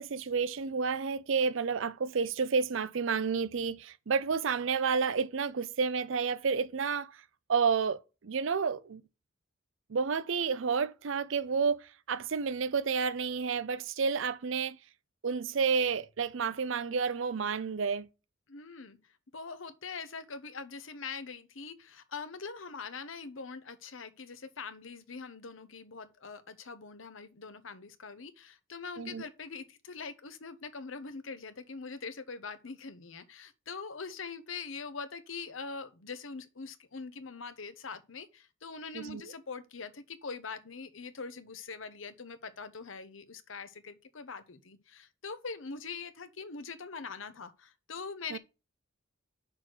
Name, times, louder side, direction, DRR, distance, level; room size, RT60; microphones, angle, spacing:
voice 1, 0.0-7.2 7.5-9.0 9.9-14.8 15.2-18.1 29.0-29.2 38.9-39.2 48.3-48.4, right 5 dB, 65° right, 0.5 m, -30 dB
voice 2, 18.5-19.0 19.3-48.4, left 4 dB, 70° left, 1.0 m, -43 dB
6.1 x 4.8 x 6.1 m
head